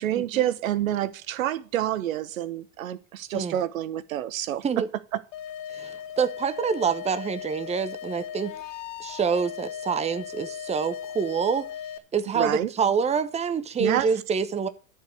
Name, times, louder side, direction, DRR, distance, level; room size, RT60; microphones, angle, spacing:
voice 1, 0.0-4.8 5.1-5.2 12.3-12.7 13.8-14.1, right 12 dB, 80° right, 1.0 m, -28 dB
sound 1, 5.3-12.0, left 9 dB, 65° left, 1.1 m, -37 dB
voice 2, 5.7-8.5 9.0-11.7 12.1-14.7, right 6 dB, 15° right, 0.8 m, -26 dB
10.0 x 4.9 x 7.7 m
hypercardioid pair, 95°, 40 cm